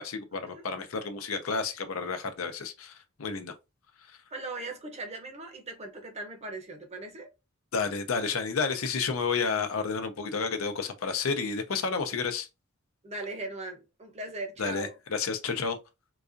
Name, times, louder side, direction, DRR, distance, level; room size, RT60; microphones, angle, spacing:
voice 1, 0.0-3.5 4.0-4.2 7.7-12.5 14.6-15.8, left 5 dB, 75° left, 0.6 m, -31 dB
voice 2, 4.3-7.3 9.5-9.8 13.0-15.0, right 2 dB, 30° right, 0.8 m, -39 dB
3.9 x 2.5 x 2.5 m
head